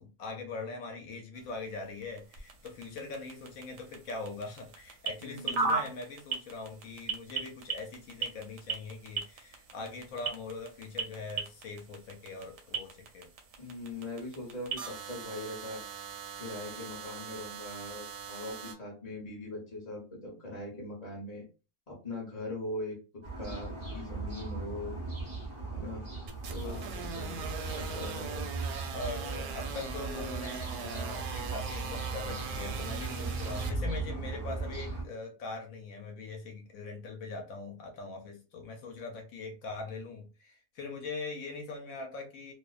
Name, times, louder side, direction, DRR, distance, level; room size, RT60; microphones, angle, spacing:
voice 1, 0.0-13.3 26.6-28.1 28.9-42.5, left 3 dB, 70° left, 2 dB, 0.9 m, -42 dB
sound 1, 1.3-18.7, right 4 dB, 65° right, 0.7 m, -39 dB
voice 2, 5.2-5.8 13.6-15.8 16.3-21.4 21.9-25.0 25.7-26.0 26.5-27.1 27.7-28.5, left 2 dB, 35° left, -3 dB, 0.7 m, -41 dB
sound 2, 23.2-35.0, right 3 dB, 45° right, 0.3 m, -38 dB
sound 3, 26.3-33.7, right 6 dB, 90° right, 1.2 m, -40 dB
2.7 x 2.1 x 2.3 m, 0.33 s
omnidirectional pair, 1.7 m